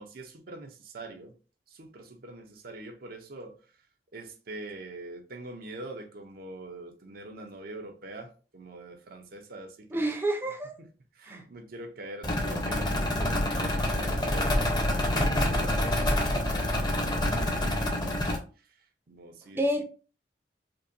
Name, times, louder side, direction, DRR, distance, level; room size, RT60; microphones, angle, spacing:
voice 1, 0.0-1.4 1.7-3.6 4.1-10.1 10.8-14.8 15.1-17.5 17.9-18.4 19.1-19.8, right 2 dB, 55° right, 0.6 m, -44 dB
voice 2, 9.9-10.7 11.3-11.4 19.5-19.8, right 1 dB, 15° right, 0.6 m, -28 dB
sound 1, 12.2-18.4, left 1 dB, 25° left, 0.8 m, -27 dB
5.2 x 2.2 x 2.6 m
head